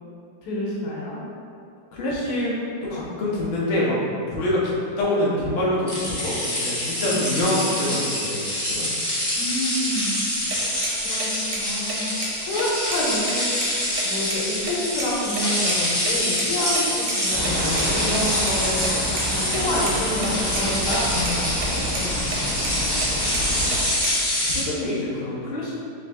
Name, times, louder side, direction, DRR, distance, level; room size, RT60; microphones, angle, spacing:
voice 1, 0.4-1.2 7.0-7.2 7.4-7.6 9.4-10.2 11.0-12.1 12.4-13.5 14.0-18.9 19.3-23.0, left 1 dB, 85° left, -6 dB, 1.9 m, -28 dB
voice 2, 1.9-2.6 2.8-4.0 4.3-9.0 24.4-25.7, left 1 dB, 70° left, -6 dB, 0.5 m, -25 dB
sound 1, 5.9-24.6, left 1 dB, 20° left, 0.6 m, -25 dB
sound 2, 10.4-15.4 15.7-15.8 16.1-16.2 16.4-16.5 16.7-16.8 17.1-17.2 17.4-18.5 18.8-19.3 19.5-20.3 20.6-21.0 21.2-21.7 21.9-22.0 22.3-22.7 23.0-24.2, right 5 dB, 90° right, 1.6 m, -33 dB
sound 3, 17.3-23.8, equal, 55° right, 0.8 m, -29 dB
3.8 x 3.6 x 3.3 m, 2.5 s
omnidirectional pair, 2.4 m